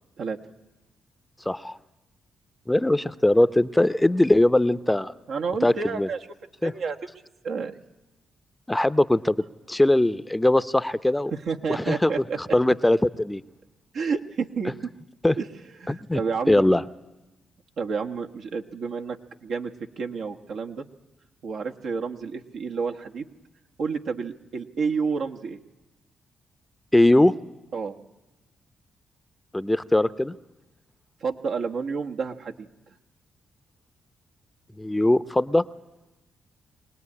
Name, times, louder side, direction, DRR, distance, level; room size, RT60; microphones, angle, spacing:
voice 1, 1.5-1.8 2.7-5.1 5.6-6.1 6.6-6.7 8.7-9.4 9.7-11.3 11.7-12.1 12.4-13.4 15.2-15.4 15.9-16.2 16.5-16.8 26.9-27.3 29.5-30.4 34.8-35.6, left 1 dB, 15° left, 14 dB, 0.7 m, -21 dB
voice 2, 5.3-6.2 6.6-7.0 7.4-7.8 11.3-12.4 13.9-14.7 15.4-15.5 15.8-16.5 17.8-20.8 21.4-23.3 23.8-25.6 27.7-27.9 31.2-32.5, right 5 dB, 70° right, 3 dB, 1.3 m, -30 dB
22.5 x 18.0 x 9.8 m, 1.1 s
hypercardioid pair, 45°, 0 cm